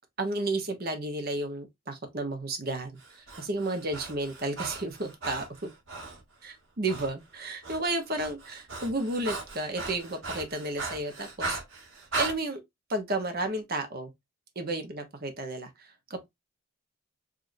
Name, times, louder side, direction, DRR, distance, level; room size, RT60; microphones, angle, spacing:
voice 1, 0.2-5.7 6.4-11.6 12.2-12.6 12.9-14.1 14.6-16.3, right 2 dB, 45° right, 0.9 m, -32 dB
Breathing, 3.0-6.2 6.9-7.1 7.4-12.4, right 3 dB, 65° right, 1.5 m, -37 dB
5.0 x 2.7 x 2.6 m
head